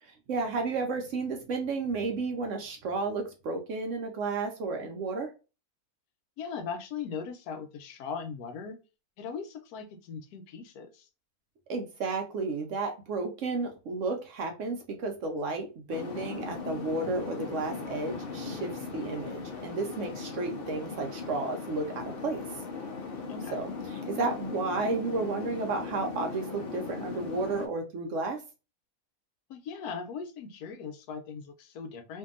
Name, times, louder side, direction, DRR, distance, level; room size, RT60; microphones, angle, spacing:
voice 1, 0.0-5.3 11.7-22.4 23.5-28.4, right 3 dB, 65° right, 3 dB, 0.9 m, -32 dB
voice 2, 6.4-8.8 9.2-11.1 23.3-23.6 29.5-32.2, left 6 dB, 90° left, 7 dB, 1.1 m, -39 dB
sound 1, 15.9-27.7, left 4 dB, 60° left, 0.6 m, -38 dB
2.7 x 2.5 x 2.4 m, 0.31 s
omnidirectional pair, 1.6 m